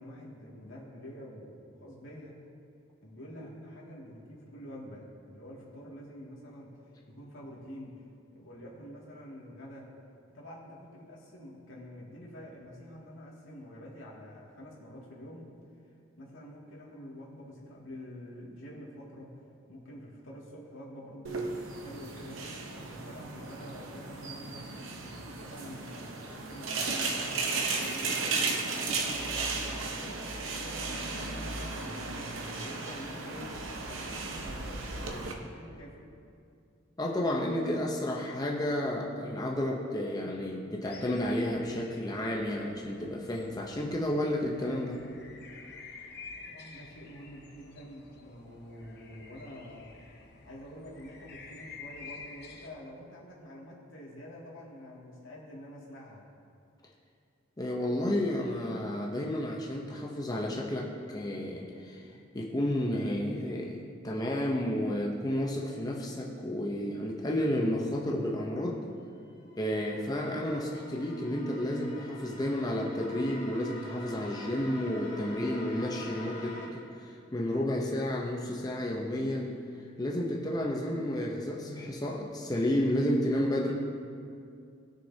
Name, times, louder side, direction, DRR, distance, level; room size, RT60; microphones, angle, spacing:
voice 1, 0.0-2.4 3.0-6.7 7.1-7.9 8.3-9.9 10.3-15.5 16.2-19.3 19.7-22.4 22.8-24.7 25.1-30.2 30.6-32.1 32.5-36.1 46.4-50.0 50.4-56.3, equal, 75° left, -5 dB, 2.3 m, -47 dB
sound 1, 21.2-35.3, right 3 dB, 80° right, 1.0 m, -35 dB
voice 2, 37.0-45.0 57.6-62.1 62.3-68.8 69.6-79.6 80.0-83.7, left 1 dB, 20° left, -2 dB, 0.7 m, -31 dB
sound 2, 40.8-52.7, left 4 dB, 55° left, 1.0 m, -50 dB
sound 3, 69.0-76.7, left 2 dB, 35° left, 2.4 m, -46 dB
19.0 x 6.5 x 2.8 m, 2.5 s
head